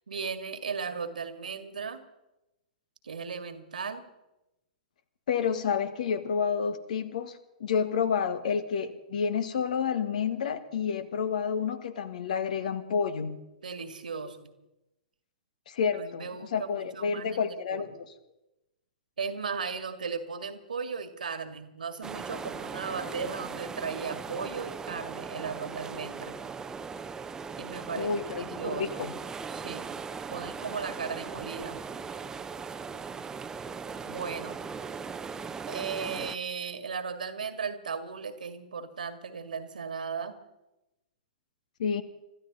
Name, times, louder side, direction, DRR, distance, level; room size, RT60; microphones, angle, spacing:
voice 1, 0.1-2.0 3.0-4.0 13.6-14.5 15.9-17.9 19.2-26.4 27.6-28.1 28.4-28.9 29.5-29.9 30.3-31.8 34.1-34.6 35.7-40.4, right 5 dB, 75° right, 9 dB, 1.9 m, -36 dB
voice 2, 5.3-13.4 15.7-17.9 27.9-29.1 41.8-42.0, left 6 dB, 60° left, 12 dB, 1.5 m, -29 dB
sound 1, 22.0-36.4, right 5 dB, 15° right, 0.8 m, -39 dB
25.5 x 13.5 x 4.0 m, 0.94 s
figure-of-eight pair, 110°, 5 cm